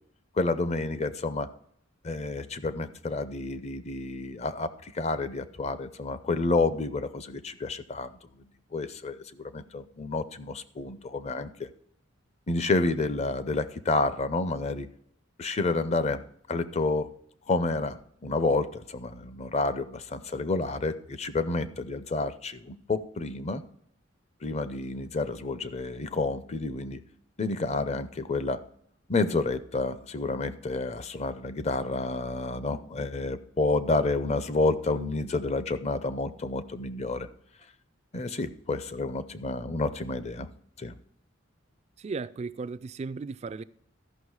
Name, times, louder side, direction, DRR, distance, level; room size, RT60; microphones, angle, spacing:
voice 1, 0.4-1.5 2.0-8.1 8.7-11.7 12.5-14.9 15.4-16.2 16.5-17.1 17.5-23.6 24.4-27.0 27.4-28.6 29.1-37.3 38.1-40.5 40.8-40.9, left 3 dB, 35° left, 0.6 m, -29 dB
voice 2, 42.0-43.6, right 4 dB, 35° right, 0.3 m, -35 dB
13.5 x 5.9 x 4.7 m
head